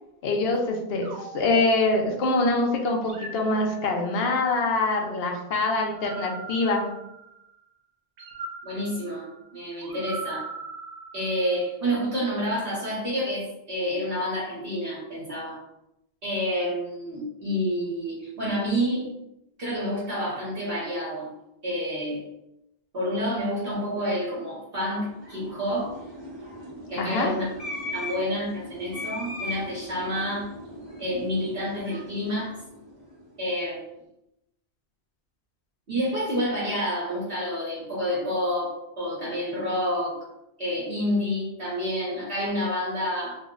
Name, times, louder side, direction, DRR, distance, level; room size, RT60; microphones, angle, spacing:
voice 1, 0.2-1.1 1.3-6.9 27.0-27.4, left 2 dB, 70° left, 1 dB, 0.8 m, -24 dB
sound 1, 1.0-2.4 3.0-4.3 5.8-7.5 8.2-11.7, right 3 dB, 85° right, 0.9 m, -41 dB
voice 2, 8.6-10.5 11.1-15.6 16.2-19.1 19.6-21.3 21.6-22.2 22.9-25.9 26.9-27.5 27.9-30.5 31.0-32.5 33.4-33.8 35.9-40.2 40.6-43.4, equal, 60° right, -7 dB, 1.0 m, -28 dB
sound 2, 24.9-33.4, left 1 dB, 40° right, 0.9 m, -39 dB
2.5 x 2.0 x 3.6 m, 0.84 s
omnidirectional pair, 1.1 m